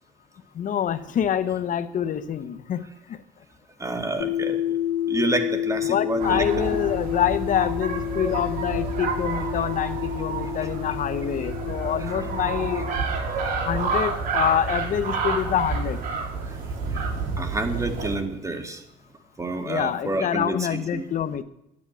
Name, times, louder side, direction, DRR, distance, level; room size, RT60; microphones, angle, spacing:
voice 1, 0.5-3.2 5.8-12.9 13.5-16.0 19.7-21.4, left 9 dB, 50° left, 13 dB, 1.0 m, -26 dB
voice 2, 3.8-4.6 5.1-6.5 10.6-10.7 12.4-12.8 16.9-17.1 17.4-18.8 19.4-21.0, right 2 dB, 20° right, 6 dB, 2.1 m, -29 dB
sound 1, 4.2-13.0, left 11 dB, 80° left, 1.1 m, -30 dB
sound 2, 6.2-18.2, right 4 dB, 55° right, 5.5 m, -29 dB
11.5 x 10.5 x 9.8 m, 0.83 s
cardioid pair, 110°, 17 cm